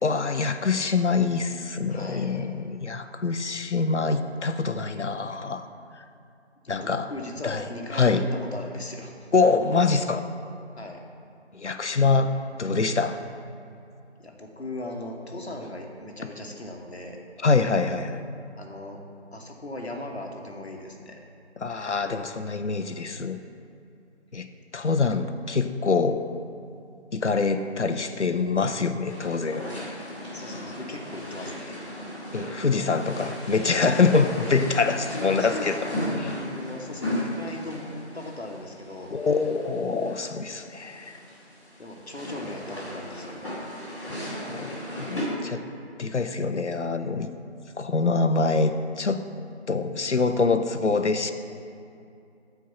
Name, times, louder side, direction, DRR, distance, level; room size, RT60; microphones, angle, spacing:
voice 1, 0.0-5.7 6.7-7.1 7.4-7.6 7.9-8.2 9.3-10.3 11.5-12.3 12.6-13.2 17.4-18.2 21.6-23.4 24.3-24.5 24.7-26.2 27.1-29.6 32.3-35.8 39.1-41.2 44.5-45.6 46.0-47.3 47.8-49.2 49.7-51.3, left 4 dB, 90° left, 9 dB, 0.7 m, -25 dB
voice 2, 1.9-2.3 6.6-9.3 10.8-11.0 14.2-17.2 18.6-19.0 19.3-21.2 30.3-31.8 35.1-39.2 41.8-43.4, left 1 dB, 65° left, 1 dB, 1.3 m, -38 dB
sound 1, 29.1-45.3, equal, 25° left, 2.1 m, -36 dB
8.6 x 4.6 x 6.9 m, 2.5 s
figure-of-eight pair, 170°, 34 cm